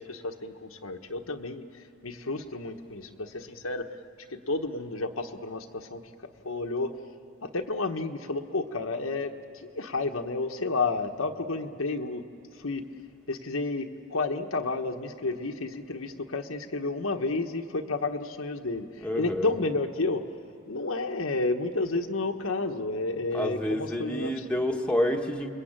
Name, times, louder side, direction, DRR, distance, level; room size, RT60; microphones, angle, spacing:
voice 1, 0.0-3.9 4.3-7.0 7.4-12.2 12.6-12.8 13.3-20.2 20.7-24.4, left 3 dB, 80° left, 4 dB, 1.3 m, -31 dB
voice 2, 19.0-19.5 23.3-25.5, equal, 5° left, 1 dB, 1.3 m, -28 dB
29.5 x 21.5 x 9.0 m, 2.7 s
head